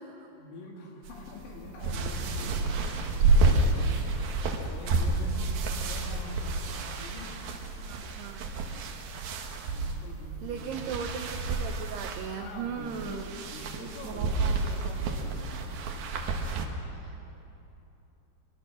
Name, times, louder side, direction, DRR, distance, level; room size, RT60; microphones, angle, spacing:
voice 1, 0.3-4.2 4.7-7.4 9.7-11.2 12.4-15.8, left 2 dB, 65° left, 0 dB, 4.6 m, -45 dB
sound 1, 1.0-16.7, right 3 dB, 65° right, 2.6 m, -30 dB
voice 2, 7.8-8.4 10.4-13.2 13.6-14.6 16.9-17.3, right 7 dB, 85° right, 5 dB, 2.3 m, -38 dB
23.0 x 22.0 x 6.3 m, 2.9 s
omnidirectional pair, 5.9 m